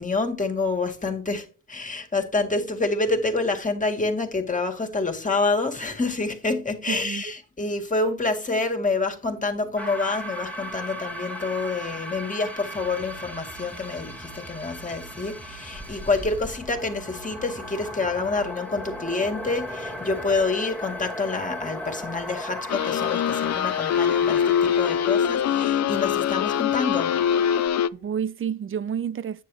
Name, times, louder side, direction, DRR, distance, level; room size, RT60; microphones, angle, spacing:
voice 1, 0.0-27.4 27.7-28.0, left 3 dB, 25° left, 2.1 m, -27 dB
voice 2, 6.9-7.3 27.9-29.4, right 8 dB, 40° right, 0.6 m, -29 dB
sound 1, 9.8-27.7, equal, 5° left, 1.5 m, -37 dB
sound 2, 12.7-20.4, right 4 dB, 90° right, 3.5 m, -47 dB
sound 3, 22.7-27.9, left 9 dB, 50° left, 0.6 m, -23 dB
9.3 x 6.9 x 3.3 m
cardioid pair, 100°, 34 cm